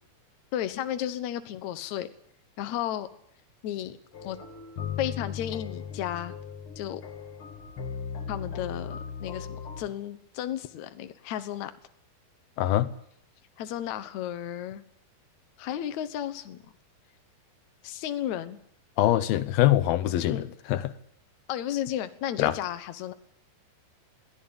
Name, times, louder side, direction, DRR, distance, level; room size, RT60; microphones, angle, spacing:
voice 1, 0.5-2.1 2.6-3.1 3.6-4.0 4.2-4.4 5.0-6.3 6.8-7.0 8.3-11.7 13.6-14.8 15.6-16.6 17.8-18.6 20.3-20.5 21.5-23.1, left 11 dB, 65° left, 10 dB, 2.2 m, -33 dB
sound 1, 4.1-9.8, left 7 dB, 45° left, 2.2 m, -37 dB
voice 2, 12.6-12.9 19.0-20.4 20.7-20.9 22.4-22.5, left 13 dB, 85° left, 12 dB, 2.8 m, -23 dB
22.0 x 15.5 x 8.9 m, 0.70 s
omnidirectional pair, 4.2 m